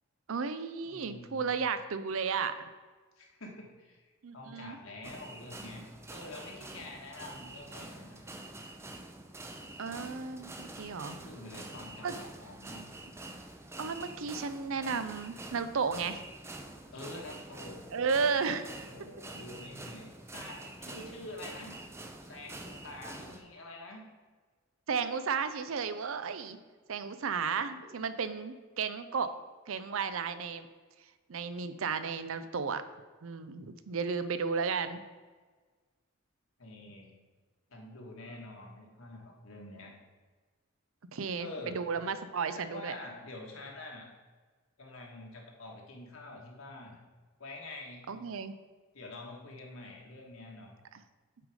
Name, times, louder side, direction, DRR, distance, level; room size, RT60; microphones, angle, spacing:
voice 1, 0.3-2.6 4.2-4.8 9.8-11.1 12.0-12.2 13.8-16.2 17.9-18.9 24.9-26.6 26.9-29.3 29.7-30.7 31.3-32.8 33.2-35.0 41.1-42.9 48.1-48.5, right 5 dB, 70° right, 12 dB, 0.5 m, -33 dB
voice 2, 0.8-1.5 3.2-5.8 6.1-8.3 11.2-12.9 16.9-17.8 18.8-21.7 22.2-24.1 36.6-37.1 37.7-39.9 41.4-41.8 42.5-44.1 44.8-47.0 47.4-48.0 48.9-50.7, left 2 dB, 75° left, 0 dB, 1.6 m, -46 dB
sound 1, 5.0-23.4, right 2 dB, 10° right, 0.5 m, -46 dB
7.7 x 4.8 x 4.9 m, 1.4 s
head